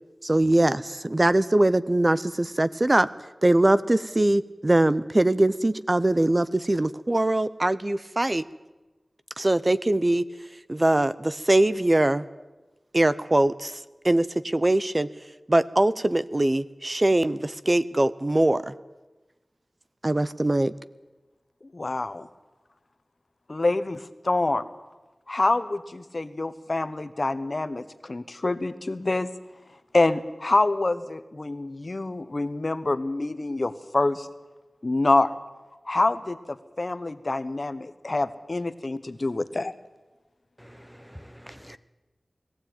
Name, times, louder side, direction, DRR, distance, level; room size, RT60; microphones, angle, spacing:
voice 1, 0.2-3.1 3.4-8.4 9.4-10.2 10.7-12.2 12.9-15.1 15.5-18.7 20.0-20.7, right 1 dB, 30° right, 15 dB, 0.6 m, -22 dB
voice 2, 21.7-22.3 23.5-24.6 25.3-29.3 29.9-34.3 34.8-35.3 35.9-39.7, left 2 dB, 45° left, 12 dB, 1.1 m, -26 dB
voice 3, 40.6-41.8, equal, ahead, 11 dB, 0.9 m, -46 dB
20.5 x 15.0 x 9.2 m, 1.1 s
wide cardioid pair, 70°, 0 cm